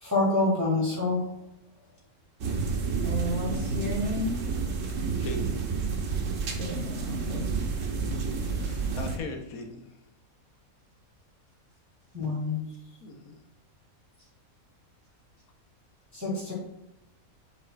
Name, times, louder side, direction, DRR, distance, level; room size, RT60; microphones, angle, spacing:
voice 1, 0.0-1.2 12.1-12.6 16.1-16.5, left 2 dB, 10° right, -7 dB, 1.8 m, -26 dB
sound 1, 2.4-9.2, right 4 dB, 65° right, 1.2 m, -30 dB
voice 2, 3.0-4.3 6.6-7.5, left 1 dB, 40° left, -4 dB, 1.8 m, -32 dB
voice 3, 5.1-5.6 7.3-7.5 8.6-9.8 13.0-13.4, left 3 dB, 80° left, 5 dB, 1.3 m, -39 dB
8.3 x 4.8 x 2.4 m, 0.83 s
omnidirectional pair, 1.5 m